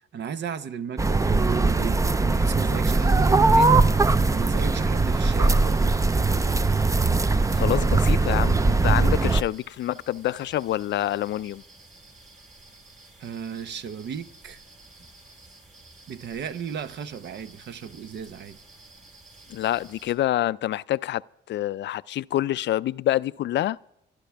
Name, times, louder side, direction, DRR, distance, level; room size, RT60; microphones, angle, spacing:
voice 1, 0.1-3.7 4.3-5.9 13.2-14.6 16.1-18.6, right 7 dB, 60° right, 0.8 m, -35 dB
sound 1, 1.0-9.4, right 3 dB, 15° right, 0.5 m, -20 dB
sound 2, 2.8-20.1, right 2 dB, 40° right, 4.9 m, -52 dB
voice 2, 7.5-11.6 19.5-21.2 21.5-23.8, left 13 dB, 65° left, 0.4 m, -27 dB
26.5 x 11.5 x 3.5 m
cardioid pair, 90°, 20 cm